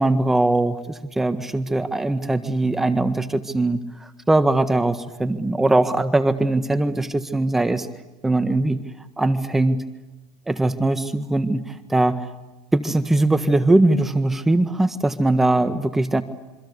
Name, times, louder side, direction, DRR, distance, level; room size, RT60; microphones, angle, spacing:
voice 1, 0.0-7.9 8.2-8.8 9.2-9.8 10.5-12.3 12.7-16.2, right 2 dB, 10° right, 9 dB, 1.6 m, -21 dB
27.5 x 25.0 x 8.3 m, 1.0 s
supercardioid pair, 110°, 3 cm